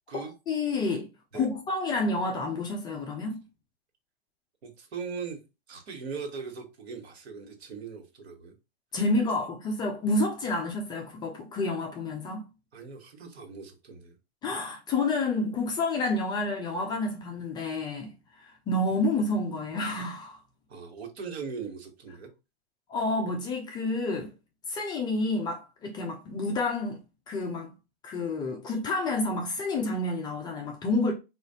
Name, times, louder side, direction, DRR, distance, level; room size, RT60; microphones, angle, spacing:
voice 1, 0.1-1.1 1.3-3.4 8.9-12.4 14.4-18.1 18.4-20.4 22.9-24.3 24.7-27.0 27.3-27.7 28.0-31.1, left 2 dB, 15° left, 0.4 m, -29 dB
voice 2, 4.6-5.4 5.7-8.5 12.7-14.1 20.7-22.3, right 5 dB, 75° right, 1.2 m, -39 dB
4.1 x 2.4 x 2.7 m
hypercardioid pair, 125°, 32 cm